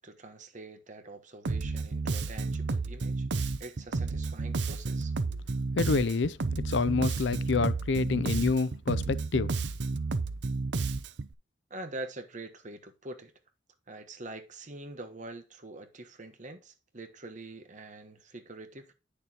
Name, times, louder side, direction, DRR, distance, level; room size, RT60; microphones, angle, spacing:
voice 1, 0.0-3.3 3.6-5.1 11.7-13.3 13.9-18.9, right 2 dB, 40° right, 1.3 m, -44 dB
Bass guitar, 1.4-11.3, right 3 dB, 65° right, 0.6 m, -31 dB
voice 2, 5.7-6.4 6.6-9.5, left 4 dB, 75° left, 0.5 m, -27 dB
9.4 x 6.6 x 2.9 m
head